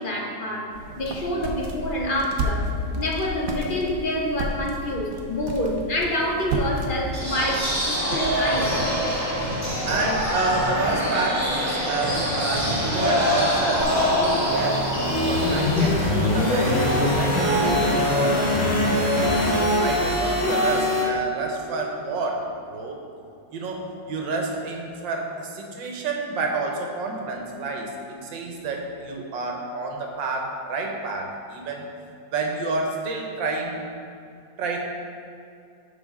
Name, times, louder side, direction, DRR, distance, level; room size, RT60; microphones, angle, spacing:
voice 1, 0.0-8.9, left 1 dB, 45° left, -1 dB, 0.6 m, -27 dB
sound 1, 0.7-11.2, right 1 dB, 60° right, 1.0 m, -33 dB
sound 2, 7.1-15.9, equal, 10° right, 1.8 m, -24 dB
voice 2, 9.9-16.8 17.1-23.0 23.5-31.8 32.3-33.8 34.6-34.8, right 3 dB, 85° right, 1 dB, 1.7 m, -29 dB
sound 3, 13.8-21.0, left 1 dB, 15° left, 1.2 m, -22 dB
13.0 x 4.9 x 3.6 m, 2.5 s
omnidirectional pair, 2.0 m